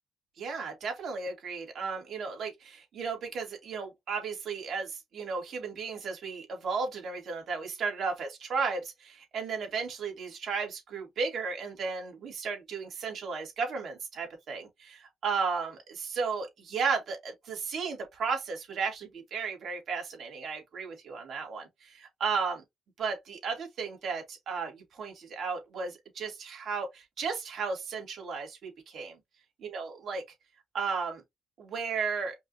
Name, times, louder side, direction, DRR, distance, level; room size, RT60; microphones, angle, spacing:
voice 1, 0.4-22.6 23.0-29.2 29.6-30.2 30.7-31.2 31.6-32.3, right 5 dB, 65° right, 2.2 m, -34 dB
5.2 x 2.6 x 2.8 m
cardioid pair, 90°, 0 cm